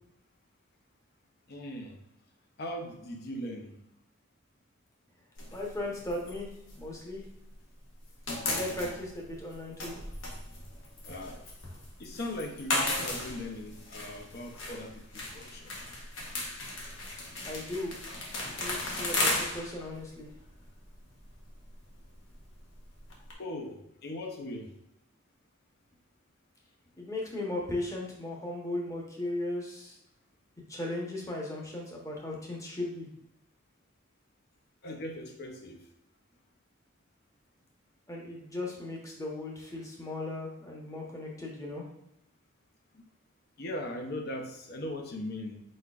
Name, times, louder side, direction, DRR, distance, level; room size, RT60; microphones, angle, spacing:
voice 1, 1.5-2.0 2.6-3.7 11.0-11.4 12.0-15.7 23.4-24.7 34.8-35.8 42.9-43.0 43.6-45.6, left 1 dB, 55° left, 3 dB, 0.7 m, -39 dB
sound 1, 5.4-7.6 7.9-23.3, left 2 dB, 75° left, 1.0 m, -36 dB
voice 2, 5.5-6.5 6.8-7.3 8.4-10.0 17.4-18.0 18.6-20.3 27.0-30.0 30.7-33.1 38.1-41.8, left 2 dB, 15° left, -2 dB, 0.9 m, -37 dB
4.5 x 4.3 x 2.4 m, 0.83 s
head